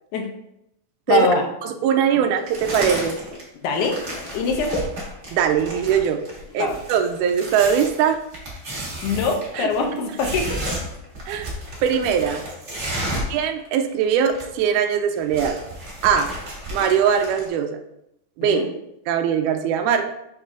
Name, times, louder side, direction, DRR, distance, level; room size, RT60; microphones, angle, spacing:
voice 1, 1.1-1.5 3.6-4.0 4.3-4.9 6.6-6.8 9.0-10.8 13.0-13.2 18.4-18.7, left 4 dB, 75° left, 4 dB, 1.9 m, -23 dB
voice 2, 1.6-3.2 5.3-6.2 6.5-8.2 9.6-9.7 11.3-11.5 11.8-12.4 13.3-15.6 16.0-16.3 16.7-17.8 18.4-18.6 19.1-20.1, right 8 dB, 85° right, 6 dB, 1.8 m, -21 dB
sound 1, 2.5-3.4 3.7-13.4 13.6-13.7 14.0-14.7 15.0-17.5, right 1 dB, 40° right, 0.9 m, -32 dB
6.1 x 6.1 x 2.6 m, 0.81 s
omnidirectional pair, 4.1 m